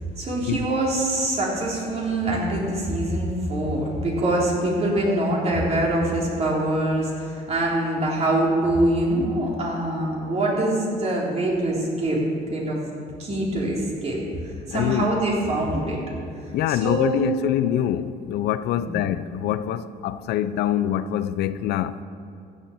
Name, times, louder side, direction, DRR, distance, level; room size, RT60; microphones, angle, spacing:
voice 1, 0.2-12.2 12.5-12.8 13.2-14.2 14.7-16.0 16.7-17.3 18.8-18.9, right 1 dB, 40° right, 3.6 m, -24 dB
voice 2, 14.7-15.2 16.5-22.0, left 11 dB, 75° left, 0.5 m, -25 dB
15.0 x 7.4 x 6.5 m
cardioid pair, 110°, 17 cm